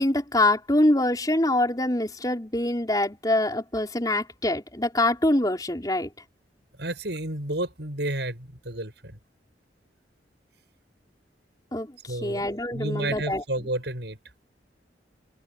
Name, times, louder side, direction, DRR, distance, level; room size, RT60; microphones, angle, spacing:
voice 1, 0.0-6.1 11.7-13.7, left 1 dB, 20° left, 4.6 m, -25 dB
voice 2, 6.8-9.2 12.1-12.5 12.7-14.2, right 1 dB, 70° right, 8.0 m, -31 dB
head